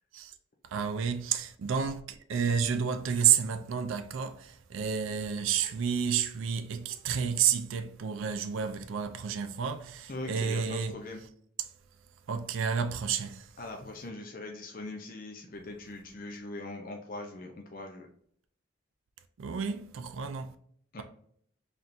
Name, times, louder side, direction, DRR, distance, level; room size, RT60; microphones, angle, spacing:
voice 1, 0.7-10.9 12.3-13.5 19.4-20.5, right 7 dB, 75° right, 0.4 m, -30 dB
voice 2, 10.1-11.2 13.6-18.1 20.9-21.0, left 2 dB, 45° left, 0.5 m, -41 dB
4.1 x 3.4 x 2.5 m
head